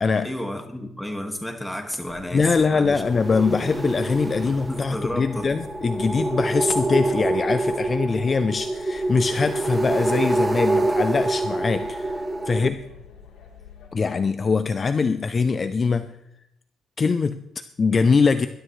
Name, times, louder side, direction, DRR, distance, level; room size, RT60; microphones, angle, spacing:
voice 1, 0.2-3.0 3.7-3.8 4.5-5.5, left 1 dB, 5° left, 4 dB, 1.8 m, -32 dB
sound 1, 2.0-13.9, left 7 dB, 70° left, 3.4 m, -47 dB
voice 2, 2.3-12.8 13.9-16.1 17.0-18.5, left 4 dB, 35° left, 11 dB, 0.5 m, -23 dB
sound 2, 2.8-12.7, right 2 dB, 15° right, 0.7 m, -26 dB
20.5 x 12.0 x 3.2 m, 0.78 s
cardioid pair, 110°, 0 cm